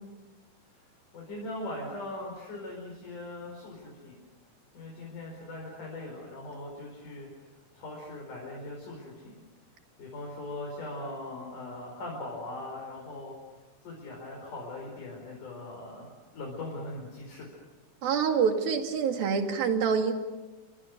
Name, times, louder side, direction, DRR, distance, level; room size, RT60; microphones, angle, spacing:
voice 1, 1.1-4.2 4.7-9.4 10.0-13.3 13.8-17.5, left 2 dB, 55° left, -2 dB, 6.4 m, -40 dB
voice 2, 18.0-20.1, right 6 dB, 75° right, 5 dB, 3.9 m, -26 dB
30.0 x 25.0 x 6.6 m, 1.2 s
omnidirectional pair, 4.3 m